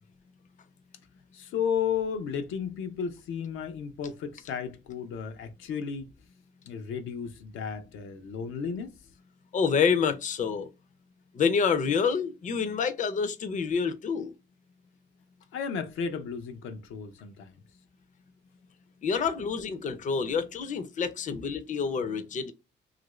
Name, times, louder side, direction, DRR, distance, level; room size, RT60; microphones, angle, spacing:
voice 1, 1.3-6.1 6.6-9.0 15.5-17.6 21.3-21.4, left 7 dB, 85° left, 0.6 m, -33 dB
voice 2, 9.5-10.7 11.3-14.3 19.0-22.5, left 6 dB, 40° left, 0.5 m, -27 dB
2.9 x 2.5 x 3.0 m
cardioid pair, 90°, 20 cm